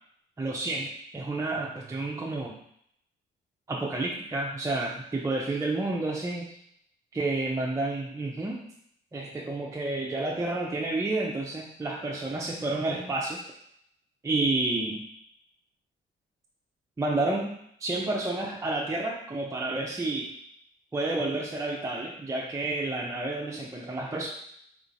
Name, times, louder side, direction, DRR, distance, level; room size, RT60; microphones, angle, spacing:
voice 1, 0.4-2.6 3.7-6.6 7.1-8.7 9.1-13.4 14.2-15.0 17.0-20.3 20.9-24.3, right 2 dB, 15° right, -2 dB, 0.4 m, -30 dB
3.7 x 2.9 x 2.6 m, 0.70 s
cardioid pair, 90°, 20 cm